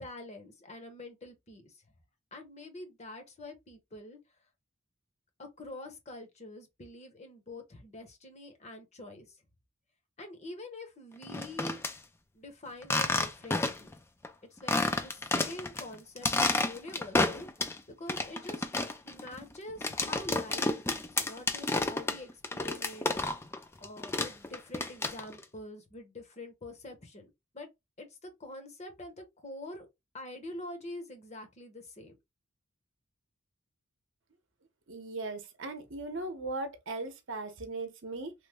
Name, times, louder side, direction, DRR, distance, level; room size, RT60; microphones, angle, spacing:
voice 1, 0.0-1.8 2.3-4.2 5.4-9.4 10.2-11.8 12.3-13.9 14.5-18.7 19.0-23.3 23.8-27.7 28.0-29.9 30.1-32.2, left 1 dB, 30° left, 0.8 m, -46 dB
sound 1, 11.2-11.9 12.8-13.9 14.2-14.3 14.7-15.8 16.2-17.8 18.1-23.6 23.8-25.4, left 2 dB, 10° left, 0.3 m, -30 dB
voice 2, 34.9-38.3, right 2 dB, 60° right, 0.8 m, -38 dB
3.1 x 2.0 x 3.4 m
head